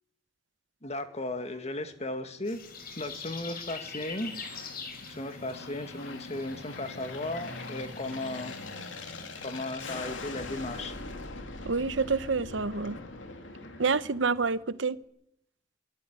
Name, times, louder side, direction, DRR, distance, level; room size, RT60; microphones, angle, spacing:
voice 1, 0.8-2.6 3.0-4.3 5.1-8.6 9.4-10.9, left 2 dB, 35° left, 2.1 m, -36 dB
Aircraft, 2.1-14.8, left 2 dB, 80° left, 2.9 m, -43 dB
sound 1, 2.5-9.7, left 5 dB, 55° left, 4.1 m, -45 dB
voice 2, 11.6-13.0 13.8-15.0, right 4 dB, 70° right, 0.9 m, -28 dB
23.0 x 15.0 x 9.6 m
head